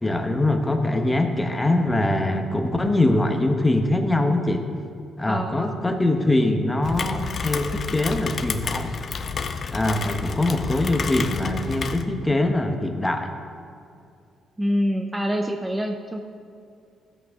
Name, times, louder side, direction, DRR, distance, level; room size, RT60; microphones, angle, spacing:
voice 1, 0.0-4.7 5.2-8.9 9.7-13.3, left 1 dB, 15° left, 5 dB, 1.0 m, -23 dB
voice 2, 5.3-5.8 14.6-16.2, equal, 15° right, 4 dB, 0.6 m, -26 dB
Rain, 6.8-12.0, left 5 dB, 50° left, 0.6 m, -30 dB
14.5 x 7.8 x 3.7 m, 2.4 s
cardioid pair, 90°, 0 cm